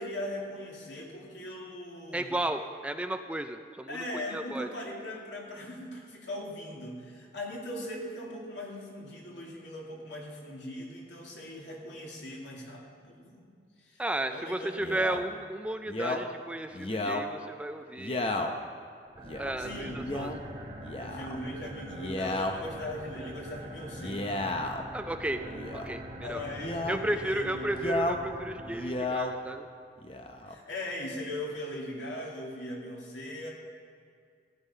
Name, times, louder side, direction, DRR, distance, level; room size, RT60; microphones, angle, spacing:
voice 1, 0.0-2.3 3.9-13.5 13.8-14.0 14.3-14.7 15.1-15.2 19.6-20.4 21.0-24.3 26.2-27.7 30.4-33.5, left 1 dB, 90° left, -2 dB, 2.7 m, -39 dB
voice 2, 2.1-4.0 4.3-4.7 14.0-18.3 19.4-20.3 24.9-25.4 25.7-26.4 26.9-29.7, right 1 dB, 5° right, 7 dB, 0.4 m, -33 dB
Male speech man speaking, 14.8-15.2 15.9-16.2 16.7-17.2 18.0-18.5 19.2-19.5 20.0-20.4 20.8-21.4 21.9-22.5 23.9-24.8 25.5-25.9 26.6-27.0 27.7-28.2 28.6-29.3 30.0-30.5, left 2 dB, 30° left, 0.8 m, -33 dB
sound 1, 19.1-29.5, right 1 dB, 30° right, 1.9 m, -43 dB
15.0 x 9.5 x 5.5 m, 2.2 s
head